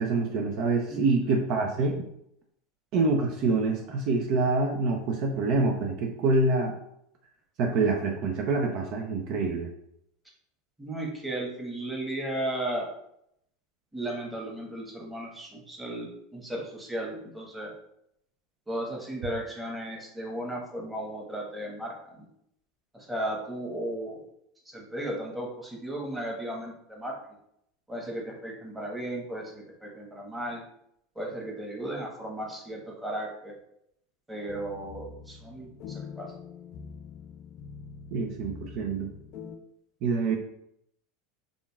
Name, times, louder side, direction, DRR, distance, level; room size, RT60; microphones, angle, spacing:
voice 1, 0.0-2.0 2.9-6.7 7.6-9.7 38.1-39.1 40.0-40.4, right 3 dB, 50° right, 1 dB, 0.5 m, -26 dB
voice 2, 0.9-1.3 10.8-12.9 13.9-17.7 18.7-22.3 22.9-24.2 24.6-27.1 27.9-30.6 31.1-33.5 34.3-36.3, right 1 dB, 10° right, -2 dB, 1.2 m, -35 dB
sound 1, 34.5-39.6, left 5 dB, 55° left, 0.4 m, -44 dB
5.1 x 2.5 x 2.3 m, 0.74 s
hypercardioid pair, 80°, 0 cm